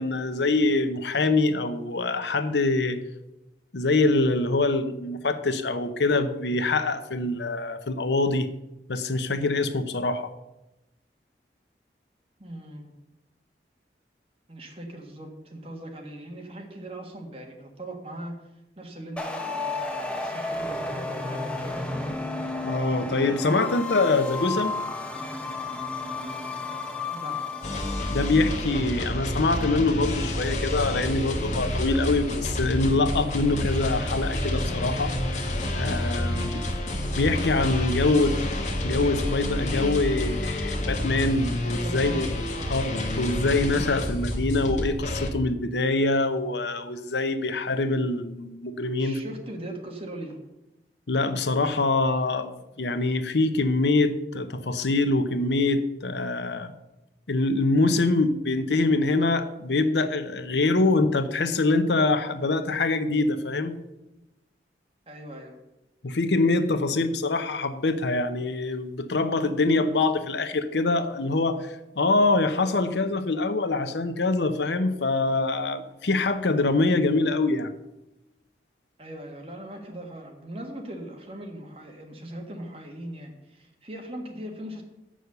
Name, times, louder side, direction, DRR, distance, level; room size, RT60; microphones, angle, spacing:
voice 1, 0.0-3.0 3.7-8.5 8.9-10.3 22.6-24.7 28.1-36.6 37.2-38.3 38.8-42.3 42.7-49.2 51.1-56.7 57.3-63.8 66.0-77.7, left 3 dB, 80° left, 10 dB, 0.8 m, -24 dB
voice 2, 12.4-12.9 14.5-18.5 18.8-21.9 27.1-27.5 41.8-42.2 42.6-42.7 49.0-50.4 65.1-65.5 79.0-84.8, right 1 dB, 35° right, 2 dB, 1.6 m, -39 dB
sound 1, 19.2-28.8, left 3 dB, 5° left, 0.8 m, -32 dB
sound 2, 27.6-45.3, left 1 dB, 40° left, 1.3 m, -29 dB
8.1 x 6.3 x 6.8 m, 0.95 s
head